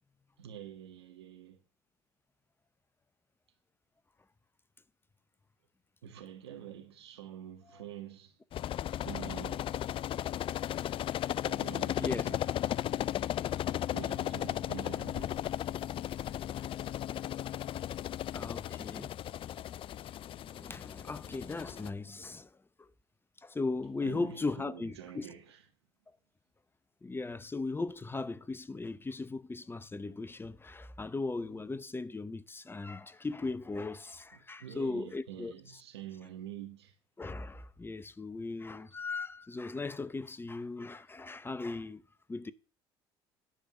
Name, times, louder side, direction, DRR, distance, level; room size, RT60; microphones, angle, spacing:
voice 1, 0.4-1.6 6.0-8.4 9.0-9.7 11.5-12.5 13.9-15.4 24.0-25.7 34.3-37.0, right 10 dB, 85° right, 1.9 m, -47 dB
sound 1, 8.5-21.9, left 11 dB, 40° left, 0.4 m, -35 dB
voice 2, 8.7-9.1 11.9-12.3 18.3-19.1 20.5-22.5 22.8-22.9 23.4-25.3 27.0-35.8 37.2-42.0 42.3-42.5, left 3 dB, 15° left, 0.7 m, -38 dB
10.0 x 5.3 x 8.4 m
hypercardioid pair, 70°, 13 cm